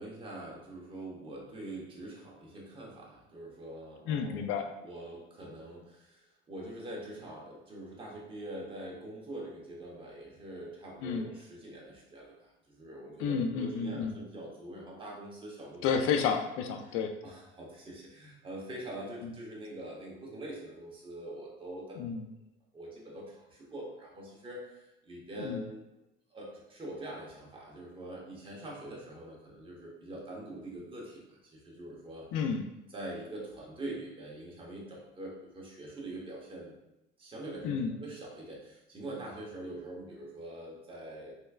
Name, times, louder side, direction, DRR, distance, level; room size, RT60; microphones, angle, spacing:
voice 1, 0.0-4.4 4.8-15.8 16.8-17.0 17.2-22.2 22.7-25.9 26.3-32.3 32.9-36.8 37.2-41.3, right 1 dB, 25° right, -3 dB, 1.0 m, -44 dB
voice 2, 4.1-4.7 11.0-11.3 13.2-14.2 15.8-17.2 19.2-19.3 22.0-22.3 25.4-25.6 32.3-32.7 37.6-37.9, left 6 dB, 75° left, 6 dB, 0.4 m, -31 dB
3.3 x 3.0 x 2.3 m, 0.92 s
cardioid pair, 125°, 21 cm